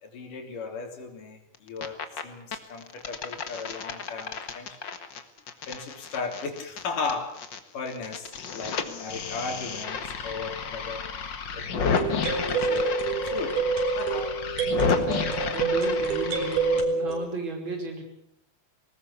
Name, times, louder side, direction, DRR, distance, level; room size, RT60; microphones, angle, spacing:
voice 1, 0.0-4.8 5.7-7.4 7.7-11.1 11.5-13.7 14.0-14.4 14.9-15.2, left 4 dB, 85° left, 4 dB, 5.0 m, -36 dB
sound 1, 1.5-2.2 2.5-7.6 7.9-16.8, left 6 dB, 45° left, 1.9 m, -32 dB
sound 2, 9.2-9.3 12.0-17.2, right 4 dB, 80° right, 6.0 m, -27 dB
voice 2, 14.8-18.0, right 2 dB, 35° right, 3 dB, 5.8 m, -35 dB
21.0 x 19.0 x 8.4 m, 0.72 s
omnidirectional pair, 3.6 m